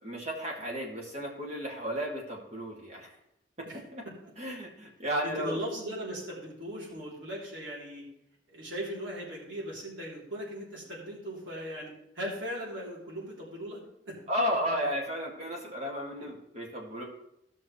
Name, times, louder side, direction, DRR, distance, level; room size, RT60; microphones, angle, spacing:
voice 1, 0.0-3.2 3.7-4.0 4.4-5.6 14.3-17.0, equal, 35° right, -2 dB, 2.1 m, -33 dB
voice 2, 5.2-8.0 8.5-14.2, equal, 90° right, -4 dB, 3.4 m, -38 dB
15.0 x 6.2 x 3.2 m, 0.78 s
head